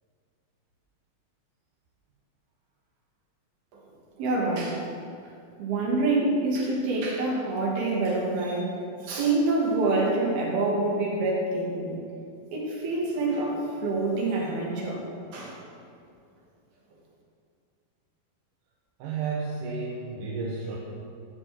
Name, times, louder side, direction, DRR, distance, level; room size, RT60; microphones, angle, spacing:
voice 1, 4.2-4.9 5.6-11.9 12.5-15.0 15.3-15.6, right 2 dB, 90° right, -3 dB, 4.2 m, -26 dB
voice 2, 19.0-20.8, right 4 dB, 65° right, -4 dB, 2.6 m, -32 dB
14.0 x 5.6 x 7.7 m, 2.4 s
omnidirectional pair, 4.3 m